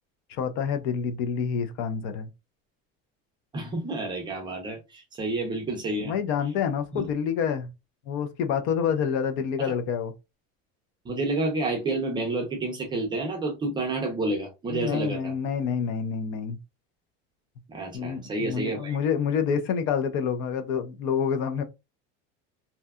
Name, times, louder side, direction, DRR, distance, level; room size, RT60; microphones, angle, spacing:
voice 1, 0.3-2.3 6.0-7.7 8.1-10.1 14.7-16.6 17.9-21.6, left 7 dB, 55° left, 0.5 m, -27 dB
voice 2, 3.5-6.2 6.9-7.0 9.6-9.7 11.0-15.3 17.7-19.0, right 2 dB, 15° right, 0.4 m, -29 dB
2.7 x 2.2 x 2.2 m
cardioid pair, 170°, 30 cm